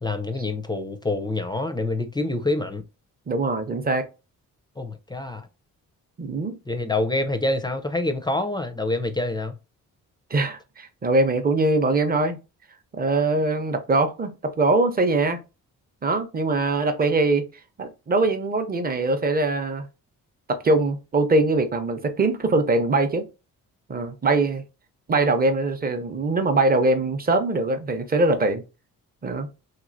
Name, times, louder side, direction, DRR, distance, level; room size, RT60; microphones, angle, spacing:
voice 1, 0.0-2.8 4.8-5.5 6.7-9.6, left 2 dB, 15° left, 0.4 m, -26 dB
voice 2, 3.3-4.1 6.2-6.6 10.3-12.4 12.9-15.4 16.0-17.4 17.8-19.9 20.5-23.2 23.9-24.6 25.1-28.6 29.2-29.5, right 2 dB, 25° right, 0.6 m, -22 dB
3.0 x 2.8 x 2.6 m
cardioid pair, 80°, 35 cm